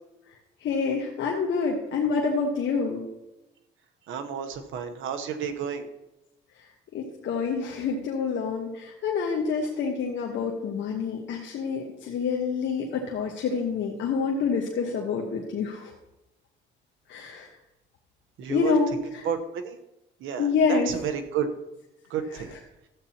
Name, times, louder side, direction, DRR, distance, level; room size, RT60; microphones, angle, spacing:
voice 1, 0.6-3.0 6.9-15.9 17.1-17.5 18.5-19.3 20.4-20.9 22.3-22.4, left 5 dB, 70° left, 0 dB, 1.2 m, -27 dB
voice 2, 4.1-5.9 18.4-18.7 19.2-19.8 20.2-21.5 22.1-22.5, right 8 dB, 80° right, 7 dB, 1.0 m, -31 dB
13.0 x 8.2 x 2.9 m, 0.94 s
cardioid pair, 90°, 20 cm